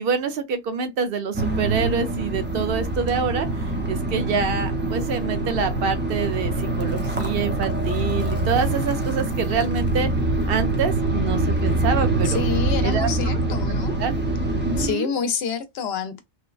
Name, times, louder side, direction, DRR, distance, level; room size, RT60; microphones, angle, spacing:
voice 1, 0.0-10.1 10.5-12.4 12.8-13.1 13.5-13.6 14.0-14.1 14.6-15.1, right 5 dB, 65° right, 0.8 m, -26 dB
sound 1, 1.3-14.9, right 2 dB, 15° right, 0.4 m, -24 dB
voice 2, 12.2-14.0 14.8-16.2, left 6 dB, 75° left, 0.8 m, -28 dB
3.3 x 2.1 x 2.3 m
omnidirectional pair, 1.1 m